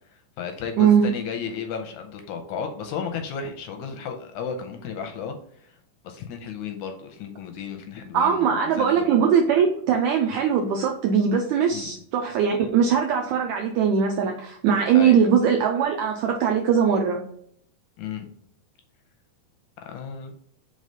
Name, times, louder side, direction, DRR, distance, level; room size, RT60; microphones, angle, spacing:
voice 1, 0.1-5.8 6.0-9.1 11.7-11.9 14.9-15.2 18.0-18.3 19.9-20.3, left 6 dB, 80° left, 5 dB, 1.8 m, -34 dB
voice 2, 8.1-17.2, right 7 dB, 80° right, 2 dB, 1.7 m, -21 dB
5.4 x 3.3 x 5.3 m, 0.66 s
omnidirectional pair, 3.9 m